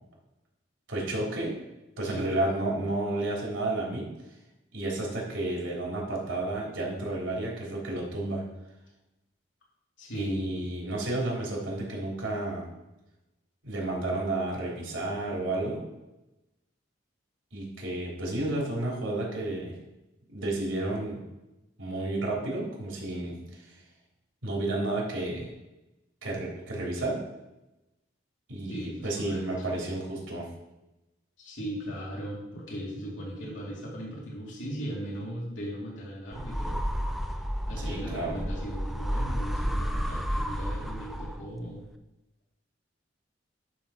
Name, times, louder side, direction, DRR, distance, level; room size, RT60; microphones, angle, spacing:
voice 1, 0.9-1.5 2.0-4.1 4.7-8.4 10.1-12.6 13.6-15.8 17.5-19.7 20.3-21.2 21.8-23.4 24.4-25.4 26.2-27.2 28.5-30.5 37.8-38.3, right 2 dB, 85° right, -4 dB, 3.4 m, -31 dB
voice 2, 10.0-10.5 28.7-29.7 31.4-36.8 37.2-41.8, equal, 75° left, -5 dB, 2.7 m, -38 dB
sound 1, 36.3-41.6, equal, ahead, 0.4 m, -31 dB
11.5 x 3.9 x 5.8 m, 0.98 s
head